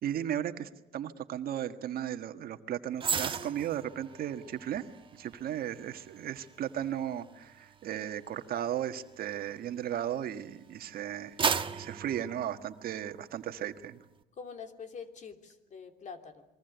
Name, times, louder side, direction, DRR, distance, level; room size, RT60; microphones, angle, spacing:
voice 1, 0.0-11.4 11.7-14.0, right 10 dB, 60° right, 8 dB, 1.6 m, -36 dB
sound 1, 3.0-10.4 10.9-13.2 13.6-13.8, right 6 dB, 30° right, 1.3 m, -37 dB
voice 2, 14.4-16.5, left 6 dB, 45° left, 7 dB, 3.1 m, -45 dB
28.0 x 22.5 x 8.1 m, 0.93 s
cardioid pair, 110°, 17 cm